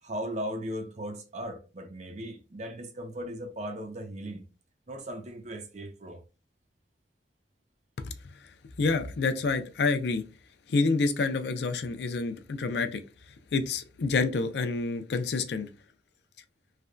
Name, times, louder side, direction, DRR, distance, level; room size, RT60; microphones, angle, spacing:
voice 1, 0.0-4.4 4.9-6.2, equal, 40° right, 0.5 m, -37 dB
voice 2, 8.8-10.2 10.7-13.0 13.5-15.7, left 4 dB, 70° left, 0.4 m, -28 dB
3.3 x 2.1 x 2.4 m
head